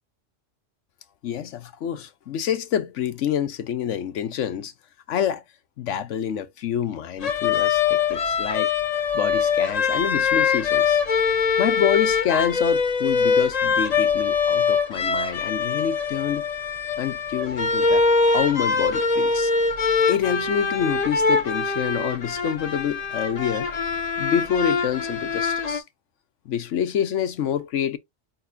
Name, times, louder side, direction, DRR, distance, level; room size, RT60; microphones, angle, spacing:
voice 1, 1.2-4.7 5.1-5.4 5.8-8.7 9.1-11.0 11.6-16.4 17.0-18.0 18.3-19.5 20.1-23.7 24.2-25.8 26.5-28.0, left 9 dB, 70° left, 1.1 m, -27 dB
sound 1, 7.2-25.8, left 5 dB, 35° left, 0.7 m, -23 dB
4.8 x 4.1 x 2.6 m
omnidirectional pair, 1.3 m